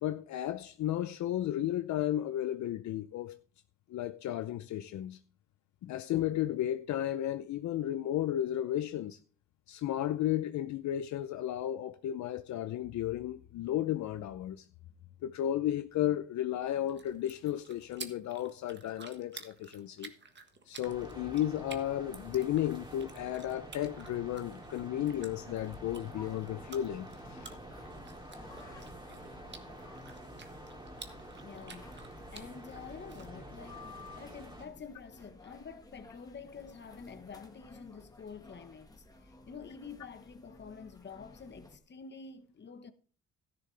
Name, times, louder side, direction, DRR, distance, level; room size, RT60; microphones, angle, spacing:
voice 1, 0.0-3.4 3.9-5.2 5.8-9.2 9.7-14.7 15.2-20.1 20.7-27.5, left 12 dB, 70° left, 0.6 m, -33 dB
sound 1, 16.7-33.3, right 5 dB, 35° right, 1.5 m, -53 dB
sound 2, 20.8-34.7, right 1 dB, 15° right, 2.8 m, -48 dB
sound 3, 25.0-41.8, left 2 dB, 10° left, 1.6 m, -55 dB
voice 2, 31.4-33.9 34.2-42.9, left 5 dB, 35° left, 1.2 m, -48 dB
12.5 x 11.0 x 3.4 m
cardioid pair, 90°, 30 cm